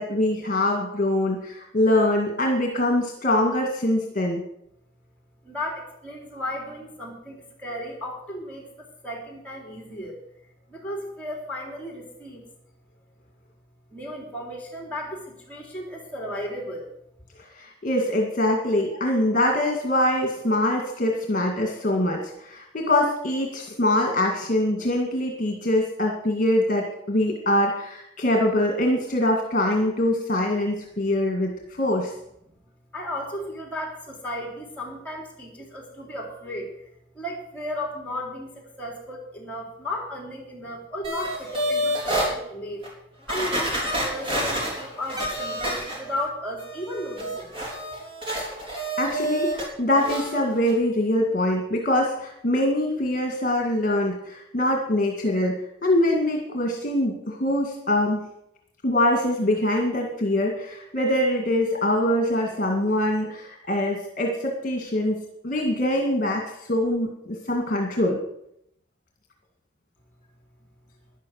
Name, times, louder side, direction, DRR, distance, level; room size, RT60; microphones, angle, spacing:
voice 1, 0.0-4.4 17.5-31.5 31.8-32.1 49.0-58.2 58.8-65.2 65.4-68.2, left 1 dB, 40° left, 1 dB, 2.0 m, -23 dB
voice 2, 5.4-10.2 10.7-12.4 13.9-16.9 32.9-36.9 37.1-42.9 43.3-47.5, left 1 dB, 5° left, 0 dB, 3.5 m, -34 dB
sound 1, 41.0-42.3 42.8-42.9 43.3-46.3 46.6-49.7 50.0-50.3 50.7-50.8, equal, 25° right, 3.6 m, -28 dB
12.5 x 10.5 x 6.5 m, 0.77 s
head